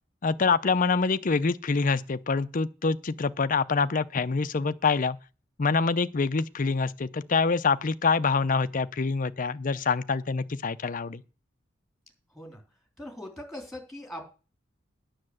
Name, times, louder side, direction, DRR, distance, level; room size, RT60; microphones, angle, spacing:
voice 1, 0.2-5.2 5.6-11.2, left 4 dB, 45° left, 0.6 m, -26 dB
voice 2, 13.0-14.3, left 1 dB, ahead, 3.3 m, -40 dB
9.9 x 6.5 x 7.8 m
head